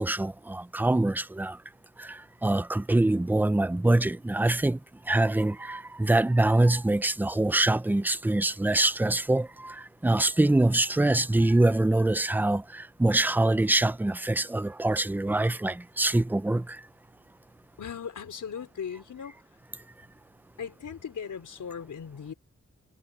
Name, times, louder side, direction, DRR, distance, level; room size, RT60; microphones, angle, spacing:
voice 1, 0.0-1.6 2.0-4.8 5.1-16.8, right 2 dB, 5° right, 0.5 m, -24 dB
voice 2, 17.8-19.4 20.6-22.3, left 7 dB, 80° left, 4.2 m, -38 dB
wide cardioid pair, 155°, 30 cm